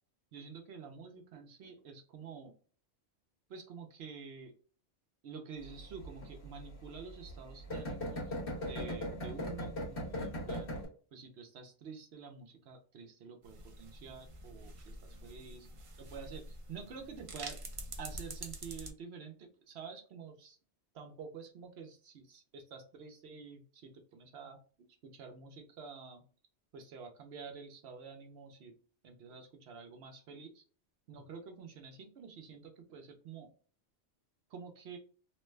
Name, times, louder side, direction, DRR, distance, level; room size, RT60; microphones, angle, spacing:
voice 1, 0.3-2.5 3.5-4.5 5.2-10.7 11.1-15.7 16.0-17.6 18.0-20.6 20.9-24.6 25.0-26.2 26.7-28.7 29.0-30.6 31.1-33.5 34.5-35.0, right 5 dB, 70° right, 4 dB, 0.8 m, -49 dB
sound 1, 5.6-10.9, equal, 55° left, 1.4 m, -39 dB
sound 2, 13.4-18.9, right 2 dB, 45° right, 0.4 m, -47 dB
3.0 x 2.1 x 3.1 m, 0.41 s
omnidirectional pair, 1.2 m